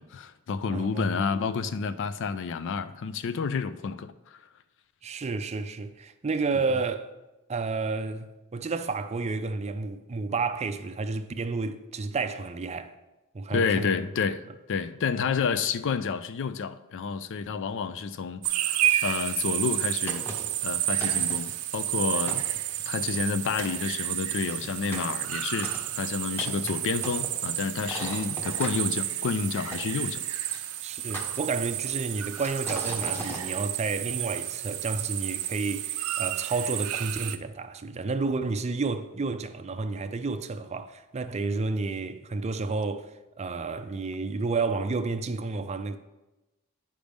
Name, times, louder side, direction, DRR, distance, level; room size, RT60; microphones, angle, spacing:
voice 1, 0.0-4.4 6.5-6.6 13.5-20.2 20.6-22.4 22.9-30.2, left 5 dB, 60° left, 0.4 m, -30 dB
voice 2, 0.7-1.3 5.0-7.1 7.5-12.9 13.3-13.9 30.8-43.1 43.4-46.0, right 4 dB, 30° right, 0.4 m, -31 dB
sound 1, 18.4-37.4, right 13 dB, 80° right, 0.5 m, -31 dB
sound 2, 20.1-20.6 21.0-21.5 22.0-22.1 22.3-23.3 23.6-23.8 24.3-28.8 29.7-30.6 31.1-31.9 32.3-33.4, right 1 dB, 10° left, 1.1 m, -39 dB
10.5 x 5.1 x 3.5 m
head